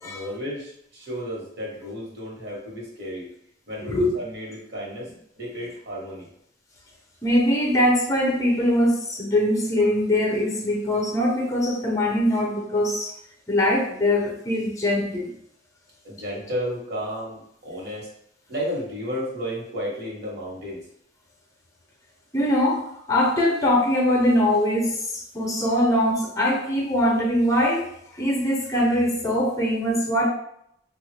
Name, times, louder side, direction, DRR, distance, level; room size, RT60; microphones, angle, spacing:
voice 1, 0.0-3.3 3.7-5.1 5.4-6.3 16.0-18.1 18.5-20.8, equal, 60° right, -3 dB, 1.2 m, -33 dB
voice 2, 3.8-4.1 7.2-13.1 13.5-15.3 22.3-27.9 28.1-30.3, left 1 dB, 15° left, 0 dB, 0.6 m, -22 dB
3.5 x 2.3 x 3.2 m, 0.73 s
head